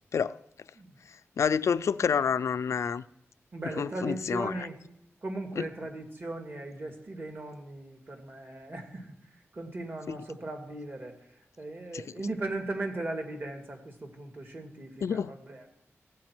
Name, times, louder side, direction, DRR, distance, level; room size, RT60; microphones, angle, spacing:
voice 1, 1.4-3.0 3.8-4.5 5.6-5.7 11.9-12.0 15.0-15.3, left 6 dB, 80° left, 0.3 m, -28 dB
voice 2, 3.5-4.8 5.2-11.3 11.6-15.7, right 2 dB, 45° right, 1.9 m, -38 dB
16.0 x 8.2 x 4.5 m
wide cardioid pair, 105°, 5 cm